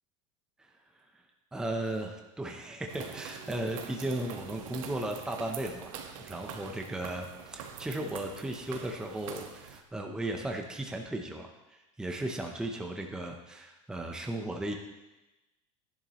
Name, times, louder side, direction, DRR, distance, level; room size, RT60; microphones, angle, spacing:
voice 1, 1.5-14.7, right 1 dB, 5° right, 2 dB, 0.7 m, -36 dB
sound 1, 2.9-9.8, right 7 dB, 90° right, 1.5 m, -44 dB
16.0 x 11.0 x 3.1 m, 1.0 s
supercardioid pair, 170°, 17 cm